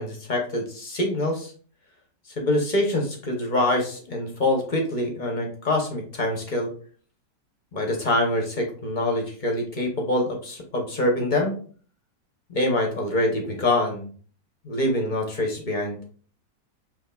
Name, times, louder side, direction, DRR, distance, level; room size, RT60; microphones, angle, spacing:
voice 1, 0.0-1.5 2.4-6.7 7.7-11.5 12.5-14.1 14.6-16.0, left 1 dB, 55° left, 1 dB, 0.5 m, -25 dB
6.0 x 2.9 x 2.2 m, 0.43 s
omnidirectional pair, 1.9 m